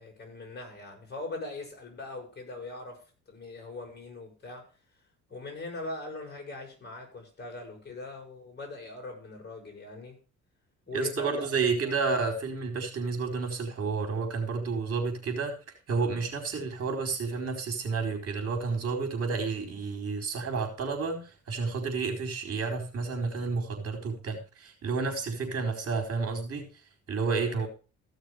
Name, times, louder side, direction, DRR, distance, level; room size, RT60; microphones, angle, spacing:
voice 1, 0.0-3.0 3.3-4.7 5.3-10.2 10.9-11.5 11.8-11.9 27.5-27.7, left 2 dB, 35° left, 6.5 m, -41 dB
voice 2, 10.9-15.6 15.9-26.7 27.1-27.7, right 4 dB, 50° right, 4.4 m, -30 dB
15.5 x 6.6 x 5.0 m
cardioid pair, 90°, 30 cm